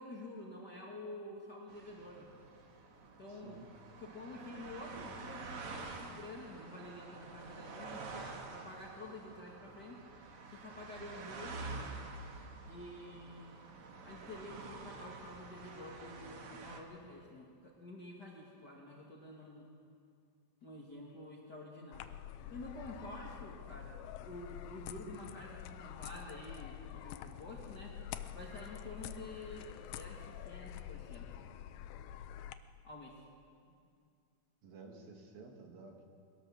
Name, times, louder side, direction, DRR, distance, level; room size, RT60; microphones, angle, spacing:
voice 1, 0.0-2.3 3.2-3.6 4.0-10.0 10.5-11.7 12.6-13.6 14.0-19.7 20.6-22.1 22.5-28.0 28.3-31.3 32.8-33.2, left 1 dB, 35° left, -3 dB, 1.8 m, -49 dB
sound 1, 1.7-16.8, right 3 dB, 50° right, 2.0 m, -48 dB
voice 2, 3.3-3.7 33.7-33.8 34.6-36.0, right 4 dB, 70° right, 1 dB, 3.8 m, -53 dB
sound 2, 21.9-32.5, left 11 dB, 85° left, 2.6 m, -47 dB
22.0 x 17.0 x 7.2 m, 2.3 s
omnidirectional pair, 4.3 m